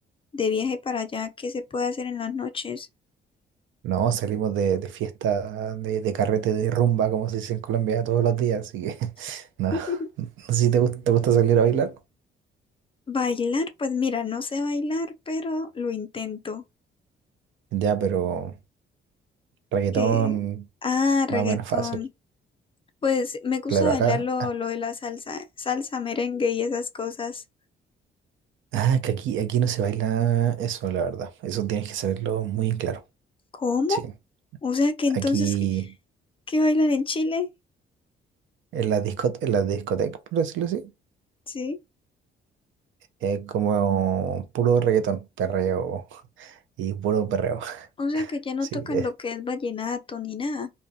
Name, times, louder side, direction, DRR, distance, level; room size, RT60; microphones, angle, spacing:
voice 1, 0.3-2.9 9.7-10.1 13.1-16.6 19.9-20.4 20.8-22.1 23.0-27.4 33.5-34.0 34.6-35.6 36.5-37.5 41.5-41.8 48.0-50.7, left 4 dB, 25° left, 0.4 m, -27 dB
voice 2, 3.8-12.0 17.7-18.6 19.7-20.6 21.3-21.9 23.7-24.2 28.7-33.0 33.9-34.0 35.1-35.9 38.7-40.9 43.2-47.9 48.1-48.3 48.7-49.1, right 8 dB, 75° right, 0.5 m, -25 dB
2.2 x 2.1 x 2.6 m
cardioid pair, 90°, 20 cm